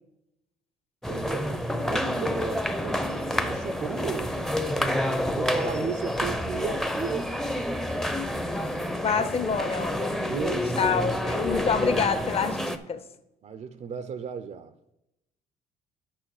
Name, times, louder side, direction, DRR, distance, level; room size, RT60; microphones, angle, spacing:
sound 1, 1.0-12.8, left 1 dB, ahead, 0.7 m, -28 dB
voice 1, 1.1-4.5 5.3-7.5 10.3-10.7 11.2-11.5 11.9-12.1 13.4-14.8, right 6 dB, 45° right, 0.6 m, -35 dB
voice 2, 9.0-10.1 10.8-13.0, left 6 dB, 35° left, 0.9 m, -27 dB
8.9 x 5.5 x 4.8 m
cardioid pair, 110°, 17 cm